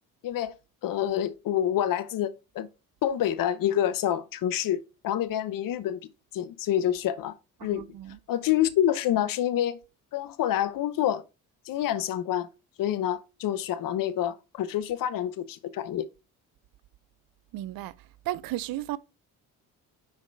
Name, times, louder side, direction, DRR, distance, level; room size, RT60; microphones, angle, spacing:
voice 1, 0.2-0.5 0.8-2.7 3.0-6.0 6.3-7.3 7.6-7.8 8.3-9.8 10.1-11.2 11.7-12.5 12.8-16.1, left 11 dB, 55° left, 0.8 m, -27 dB
voice 2, 7.6-8.2 17.5-17.9 18.3-19.0, right 15 dB, 60° right, 0.6 m, -34 dB
6.6 x 5.0 x 3.2 m
supercardioid pair, 65°, 40 cm